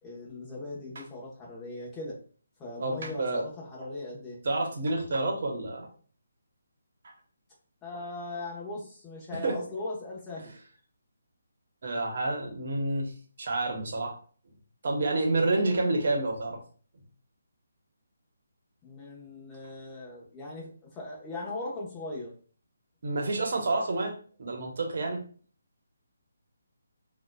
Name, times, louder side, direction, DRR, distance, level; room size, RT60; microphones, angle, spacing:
voice 1, 0.0-2.2 2.6-4.4 7.8-10.5 18.8-22.3, left 2 dB, 15° left, -5 dB, 1.0 m, -39 dB
voice 2, 2.8-3.4 4.4-5.9 9.3-9.6 11.8-13.1 13.4-14.2 14.8-16.6 23.0-24.1 24.4-25.2, right 2 dB, 55° right, 1 dB, 1.0 m, -28 dB
4.0 x 2.4 x 2.3 m, 0.43 s
figure-of-eight pair, 155°, 0 cm